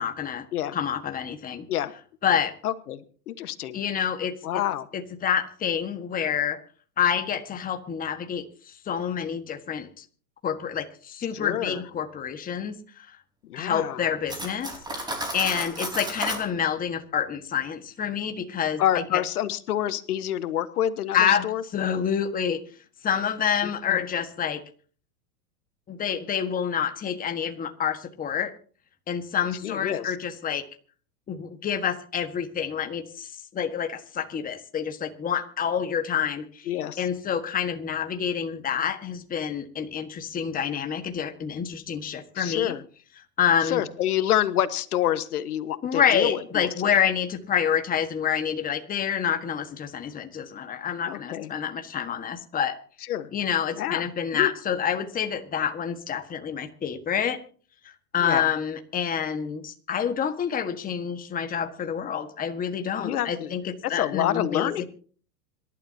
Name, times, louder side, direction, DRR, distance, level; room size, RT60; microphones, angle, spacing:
voice 1, 0.0-0.4 0.7-1.7 2.2-2.5 3.7-4.3 4.9-6.6 7.0-10.0 10.4-13.1 13.5-19.2 21.1-21.5 21.7-22.6 23.0-24.6 25.9-28.5 29.1-30.6 31.3-36.7 37.0-42.8 43.4-43.8 45.8-52.8 53.3-57.4 58.1-64.8, left 8 dB, 20° left, 6 dB, 1.6 m, -28 dB
voice 2, 2.6-3.8 4.4-4.9 11.3-11.8 13.4-14.1 18.8-21.6 23.6-24.0 29.6-30.1 36.7-37.1 42.3-42.8 43.6-46.9 51.1-51.5 53.1-53.3 53.8-54.5 58.2-58.5 63.0-63.5 63.9-64.8, left 12 dB, 90° left, 12 dB, 1.4 m, -28 dB
Cutlery silverware, 14.3-16.5, right 1 dB, 10° right, 4.3 m, -32 dB
26.5 x 12.0 x 2.8 m, 0.43 s
supercardioid pair, 140°, 44 cm